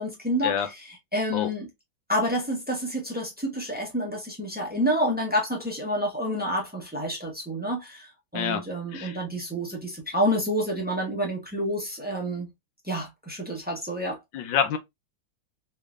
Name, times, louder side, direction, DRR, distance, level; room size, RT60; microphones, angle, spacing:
voice 1, 0.0-1.7 2.1-12.5 12.8-14.2, equal, 5° right, 0.8 m, -29 dB
voice 2, 14.3-14.8, left 8 dB, 70° left, 1.3 m, -26 dB
3.7 x 3.3 x 2.3 m
omnidirectional pair, 2.2 m